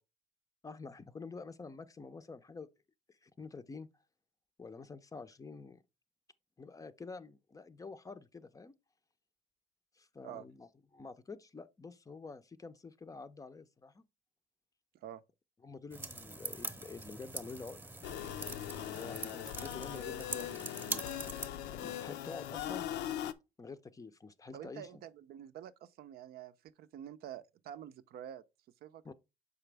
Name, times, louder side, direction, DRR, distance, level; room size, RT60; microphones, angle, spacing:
voice 1, 0.6-2.7 3.1-3.9 4.6-5.8 6.6-8.7 10.0-14.0 15.6-18.1 18.8-21.2 21.7-22.8 23.6-25.0 29.0-29.1, left 4 dB, 20° left, 0.5 m, -48 dB
sound 1, 15.9-21.5, right 2 dB, 15° right, 0.9 m, -43 dB
sound 2, 18.0-23.3, left 11 dB, 85° left, 0.5 m, -40 dB
voice 2, 24.5-28.4 28.8-29.1, right 10 dB, 65° right, 0.6 m, -48 dB
6.8 x 5.0 x 3.3 m
cardioid pair, 110°, 17 cm